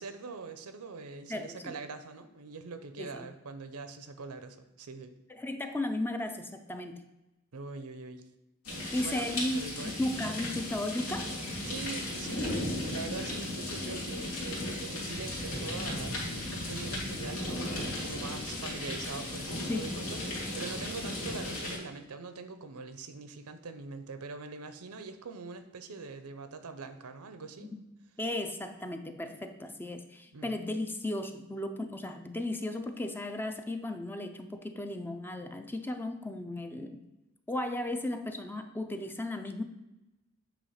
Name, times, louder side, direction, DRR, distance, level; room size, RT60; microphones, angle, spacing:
voice 1, 0.0-5.1 7.5-8.2 8.8-9.3 9.5-10.3 10.5-10.7 11.6-27.7 30.3-30.5, right 4 dB, 85° right, 9 dB, 0.7 m, -43 dB
voice 2, 1.3-1.7 3.0-3.3 5.3-7.0 8.9-11.3 19.7-20.0 27.6-27.8 28.2-37.0 37.5-39.6, left 1 dB, 10° left, 7 dB, 0.4 m, -35 dB
sound 1, 8.6-21.8, left 1 dB, 80° left, 2.2 m, -36 dB
8.4 x 3.0 x 5.7 m, 0.99 s
head